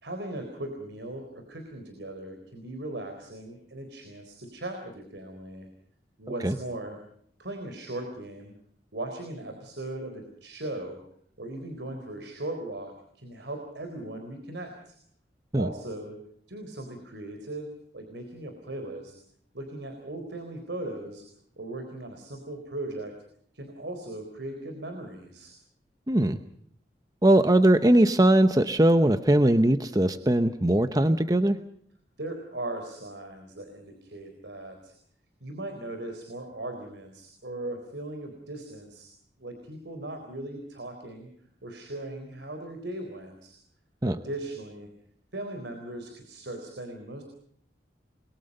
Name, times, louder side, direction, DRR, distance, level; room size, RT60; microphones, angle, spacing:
voice 1, 0.0-5.7 6.2-7.0 7.4-8.5 8.9-11.0 11.4-15.0 15.5-16.2 16.5-19.1 19.5-21.2 21.6-23.1 23.5-25.6 32.2-34.9 35.4-39.1 39.4-41.3 41.6-43.6 44.0-44.9 45.3-47.2, right 1 dB, 85° right, 5 dB, 4.0 m, -38 dB
voice 2, 26.1-26.4 27.2-31.6 44.0-44.2, right 1 dB, 20° right, 10 dB, 0.8 m, -20 dB
30.0 x 22.0 x 5.5 m, 0.66 s
head